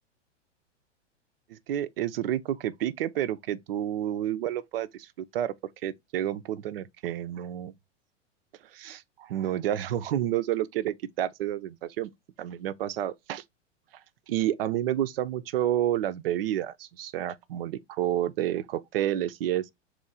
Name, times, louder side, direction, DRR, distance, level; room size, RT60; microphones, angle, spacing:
voice 1, 1.5-5.5 5.8-7.7 8.7-12.1 12.4-13.4 14.3-19.7, right 12 dB, 50° right, 0.5 m, -30 dB
3.7 x 3.1 x 3.5 m
figure-of-eight pair, 95°, 36 cm